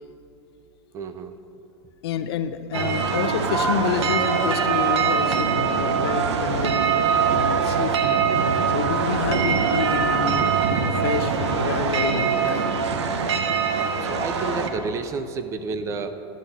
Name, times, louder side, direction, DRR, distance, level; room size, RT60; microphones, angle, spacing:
voice 1, 0.9-1.3 14.0-16.2, right 4 dB, 20° right, 10 dB, 0.4 m, -30 dB
voice 2, 2.0-6.8 7.2-10.6 11.0-12.7, left 7 dB, 65° left, 10 dB, 0.6 m, -29 dB
sound 1, 2.7-14.7, right 6 dB, 90° right, 1.0 m, -22 dB
11.5 x 7.4 x 5.5 m, 2.7 s
supercardioid pair, 150°, 14 cm